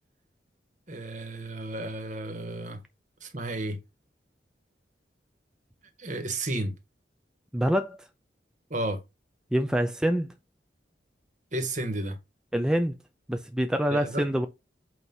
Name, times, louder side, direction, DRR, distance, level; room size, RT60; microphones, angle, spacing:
voice 1, 0.9-2.8 3.2-3.8 6.0-6.7 8.7-9.0 11.5-12.2 13.9-14.3, right 2 dB, 45° right, 1.7 m, -32 dB
voice 2, 7.5-8.0 9.5-10.3 12.5-12.9 13.3-14.5, equal, 5° right, 0.6 m, -25 dB
8.3 x 3.0 x 5.5 m
head